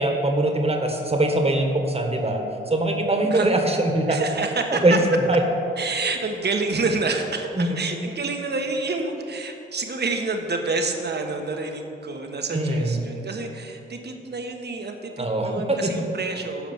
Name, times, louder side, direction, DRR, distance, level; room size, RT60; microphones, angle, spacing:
voice 1, 0.0-4.2 4.7-5.4 7.5-7.7 12.5-13.0 15.2-16.0, right 1 dB, 30° right, 3 dB, 1.6 m, -22 dB
voice 2, 3.3-3.6 4.1-5.0 5.8-16.7, right 3 dB, 50° right, 4 dB, 1.3 m, -28 dB
12.0 x 5.0 x 7.1 m, 2.9 s
cardioid pair, 60°, 21 cm